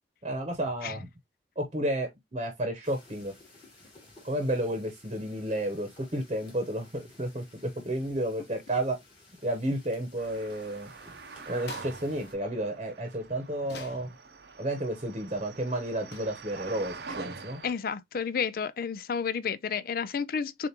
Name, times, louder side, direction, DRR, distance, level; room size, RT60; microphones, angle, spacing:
voice 1, 0.2-1.1 1.6-3.3 4.2-9.0 9.4-10.9 11.5-14.1 14.6-17.6, right 1 dB, 35° right, 0.9 m, -32 dB
sound 1, 2.8-12.3, left 2 dB, 30° left, 2.4 m, -56 dB
sound 2, 10.2-17.7, right 4 dB, 65° right, 0.6 m, -45 dB
sound 3, 11.7-12.0 13.6-14.1 16.1-16.4, left 5 dB, 70° left, 0.9 m, -45 dB
voice 2, 17.6-20.7, left 6 dB, 55° left, 0.4 m, -31 dB
6.8 x 2.5 x 2.9 m
head